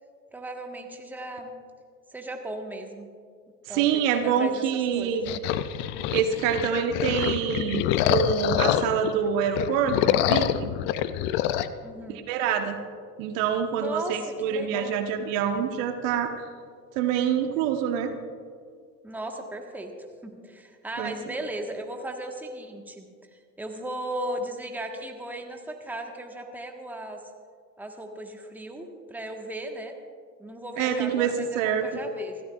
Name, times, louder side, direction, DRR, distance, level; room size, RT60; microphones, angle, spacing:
voice 1, 0.3-1.5 2.1-3.1 3.7-5.2 11.8-12.2 13.7-14.9 19.0-19.9 20.2-23.1 23.6-27.2 27.8-29.9 30.4-32.4, right 1 dB, 5° right, 3 dB, 1.5 m, -36 dB
voice 2, 3.7-5.4 6.1-10.7 12.1-12.8 13.2-16.3 16.9-18.1 21.0-21.1 30.8-31.9, right 7 dB, 50° right, 6 dB, 1.3 m, -26 dB
sound 1, 5.3-9.1 9.5-11.7, left 11 dB, 25° left, 0.4 m, -26 dB
29.0 x 13.5 x 2.5 m, 2.1 s
hypercardioid pair, 90°, 49 cm